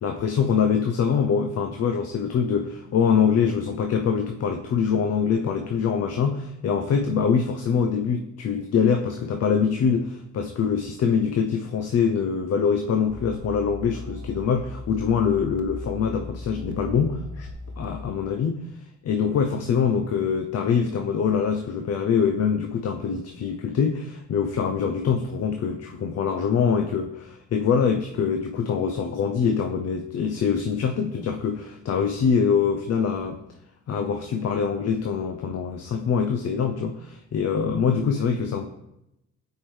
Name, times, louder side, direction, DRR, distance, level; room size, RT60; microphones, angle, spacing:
voice 1, 0.0-17.5 17.8-18.6 19.0-33.3 33.9-38.7, left 6 dB, 55° left, 4 dB, 0.6 m, -24 dB
sound 1, 13.1-18.1, left 1 dB, 75° right, 0.8 m, -37 dB
7.9 x 4.5 x 3.2 m, 0.86 s
cardioid pair, 90°, 30 cm